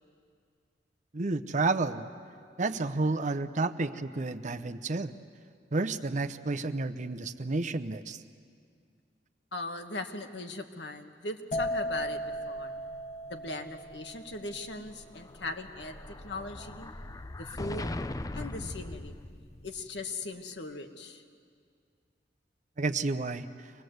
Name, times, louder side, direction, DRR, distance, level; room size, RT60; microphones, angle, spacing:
voice 1, 1.1-2.1 2.6-5.1 5.7-8.2 22.8-23.5, right 3 dB, 45° right, 9 dB, 0.8 m, -30 dB
voice 2, 9.5-12.7 13.3-16.9 17.3-17.9 18.3-19.2 19.6-21.2, left 2 dB, 70° left, 6 dB, 1.5 m, -39 dB
sound 1, 11.5-19.1 19.4-19.8, equal, 40° left, 1.2 m, -38 dB
Explosion, 15.1-19.8, left 2 dB, 20° left, 0.6 m, -40 dB
25.0 x 20.0 x 7.9 m, 2.2 s
head